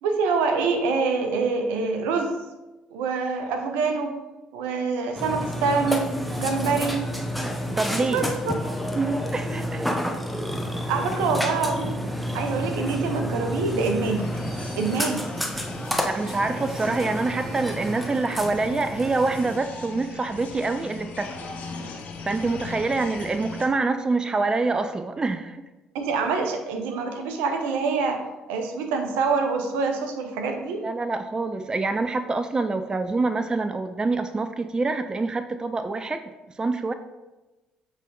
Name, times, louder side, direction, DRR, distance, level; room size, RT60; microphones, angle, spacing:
voice 1, 0.0-2.3 2.9-4.1 4.5-7.0 8.1-8.9 10.9-12.0 12.3-14.3 14.8-15.3 25.9-28.2 28.5-30.8, right 4 dB, 75° right, 5 dB, 0.8 m, -25 dB
Burping eructation, 5.1-19.6, equal, ahead, 0.8 m, -30 dB
voice 2, 7.8-8.2 8.9-9.8 16.0-21.5 22.2-25.7 30.8-36.9, right 3 dB, 25° right, 10 dB, 0.4 m, -26 dB
sound 1, 14.2-23.7, left 3 dB, 55° left, 0.9 m, -39 dB
7.4 x 3.4 x 3.8 m, 1.1 s
hypercardioid pair, 55°, 3 cm